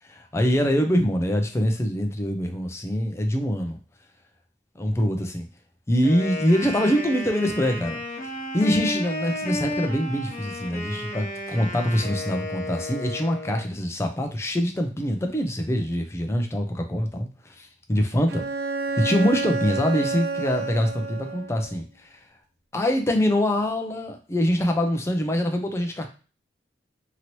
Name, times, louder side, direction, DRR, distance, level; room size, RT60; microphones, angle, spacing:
voice 1, 0.0-3.8 4.8-5.5 5.9-8.0 8.5-18.5 19.0-22.2 22.7-26.1, equal, 15° left, 4 dB, 0.4 m, -24 dB
Wind instrument woodwind instrument, 6.0-13.7, left 1 dB, 45° left, 0.9 m, -32 dB
Bowed string instrument, 18.3-21.8, right 4 dB, 60° right, 0.4 m, -29 dB
2.9 x 2.7 x 2.9 m, 0.36 s
head